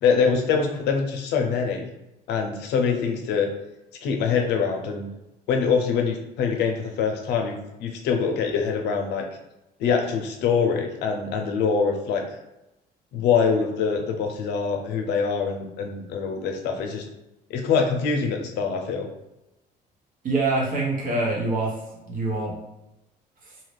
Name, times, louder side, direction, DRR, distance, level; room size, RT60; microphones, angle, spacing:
voice 1, 0.0-1.9 2.3-3.5 4.0-5.1 5.5-9.3 9.8-12.2 13.1-17.0 17.5-19.1, left 5 dB, 85° left, 3 dB, 0.6 m, -24 dB
voice 2, 20.2-21.7 22.1-22.5 23.4-23.5, right 2 dB, 55° right, -3 dB, 1.1 m, -25 dB
2.8 x 2.4 x 3.2 m, 0.92 s
cardioid pair, 110°, 17 cm